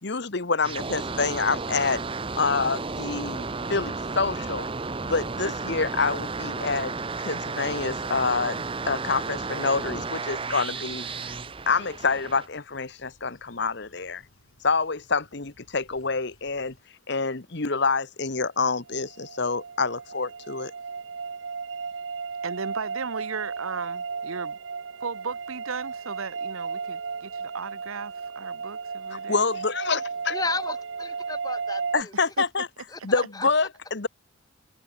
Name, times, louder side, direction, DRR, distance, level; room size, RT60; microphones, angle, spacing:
voice 1, 0.0-2.0 2.4-4.7 5.0-6.9 7.2-11.0 11.7-14.2 14.6-16.7 17.1-20.7 29.3-30.3 31.9-32.7 33.0-34.1, left 4 dB, 55° left, 1.3 m, -27 dB
sound 1, 0.6-12.5, right 4 dB, 25° right, 0.8 m, -33 dB
sound 2, 9.2-16.8, left 3 dB, 90° left, 5.9 m, -58 dB
sound 3, 18.9-32.0, right 5 dB, 60° right, 0.7 m, -34 dB
voice 2, 22.4-24.6 25.0-29.4 32.4-32.5, right 5 dB, 85° right, 1.1 m, -36 dB
voice 3, 30.3-32.1 32.9-33.5, left 3 dB, 20° left, 1.3 m, -33 dB
head